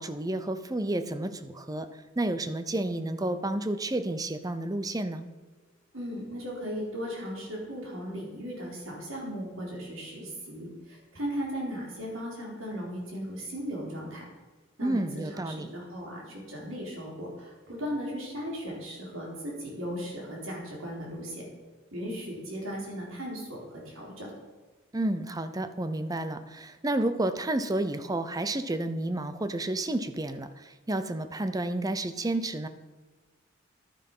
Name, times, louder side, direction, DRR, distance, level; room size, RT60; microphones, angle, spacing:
voice 1, 0.0-1.9 2.2-5.2 14.8-15.7 24.9-32.7, right 1 dB, 20° right, 10 dB, 0.6 m, -31 dB
voice 2, 5.9-14.3 14.8-21.4 21.9-24.3, equal, 80° right, -2 dB, 4.1 m, -37 dB
11.0 x 9.5 x 5.5 m, 1.3 s
head